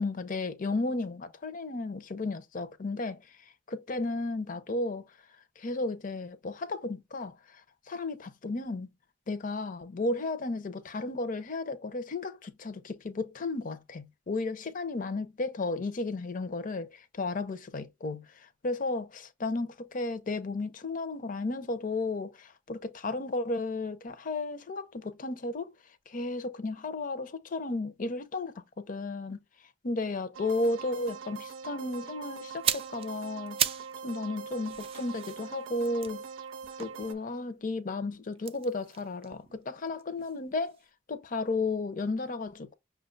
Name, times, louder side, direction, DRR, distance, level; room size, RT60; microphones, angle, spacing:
voice 1, 0.0-3.4 3.7-5.1 5.6-8.9 9.3-25.7 26.1-29.4 29.8-36.2 36.8-40.8 41.1-42.7, left 2 dB, 45° left, 0.6 m, -34 dB
sound 1, 30.3-37.1, right 6 dB, 85° right, 0.5 m, -43 dB
sound 2, 32.5-34.0 34.3-37.5 38.4-40.4 40.7-40.9, right 9 dB, 30° right, 0.3 m, -36 dB
5.8 x 2.2 x 3.8 m
head